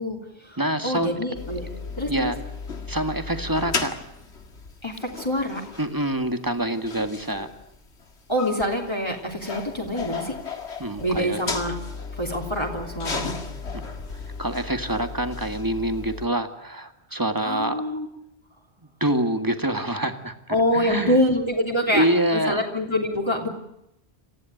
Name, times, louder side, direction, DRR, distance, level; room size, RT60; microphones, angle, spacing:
voice 1, 0.0-1.7 2.0-2.3 4.8-5.6 8.3-10.3 11.0-11.7 12.2-13.3 17.1-18.1 20.5-22.1 22.3-23.5, left 1 dB, 25° left, -1 dB, 3.2 m, -26 dB
voice 2, 0.6-1.1 1.7-2.4 2.9-3.9 5.8-7.5 10.8-11.4 14.4-17.7 19.0-21.2 21.9-22.6, right 1 dB, 20° right, 7 dB, 1.9 m, -26 dB
sound 1, 1.3-16.3, left 4 dB, 85° left, 2.3 m, -35 dB
28.5 x 15.5 x 9.2 m, 0.84 s
omnidirectional pair, 1.1 m